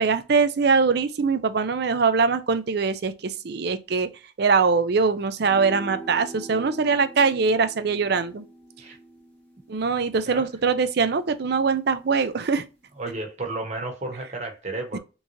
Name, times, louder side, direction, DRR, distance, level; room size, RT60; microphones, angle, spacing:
voice 1, 0.0-4.1 4.4-8.4 9.7-12.6 14.9-15.0, right 5 dB, 60° right, 0.5 m, -22 dB
sound 1, 5.4-12.0, right 2 dB, 10° left, 1.1 m, -44 dB
voice 2, 13.0-15.0, right 2 dB, 40° right, 1.1 m, -32 dB
3.6 x 3.1 x 2.6 m
head